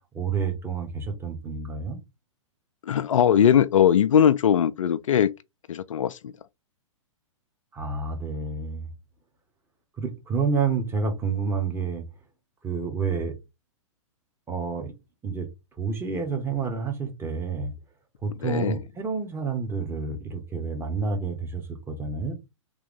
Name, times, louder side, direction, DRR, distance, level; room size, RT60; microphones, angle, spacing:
voice 1, 0.1-2.0 7.7-8.9 10.0-12.0 12.6-13.3 14.5-14.9 15.2-15.5 15.8-17.7 18.2-22.3, right 5 dB, 15° right, 1.4 m, -29 dB
voice 2, 2.8-5.3 5.7-6.3 18.4-18.8, left 9 dB, 75° left, 0.4 m, -20 dB
3.5 x 3.0 x 3.6 m
hypercardioid pair, 115°, 17 cm